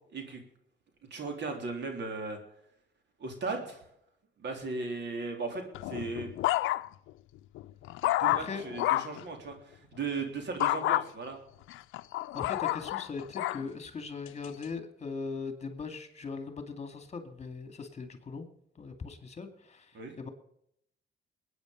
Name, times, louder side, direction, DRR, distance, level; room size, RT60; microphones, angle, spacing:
voice 1, 1.1-2.4 3.2-3.8 4.4-6.3 8.0-11.4 19.9-20.1, right 4 dB, 60° right, 4 dB, 3.4 m, -37 dB
sound 1, 5.7-7.1 7.6-9.2 10.6-11.0 11.7-13.6 14.3-14.6, left 16 dB, 90° left, 0.5 m, -30 dB
voice 2, 8.3-8.6 12.3-18.5 18.8-20.3, left 4 dB, 35° left, 7 dB, 2.3 m, -40 dB
21.0 x 9.4 x 5.2 m, 0.73 s
cardioid pair, 90°, 20 cm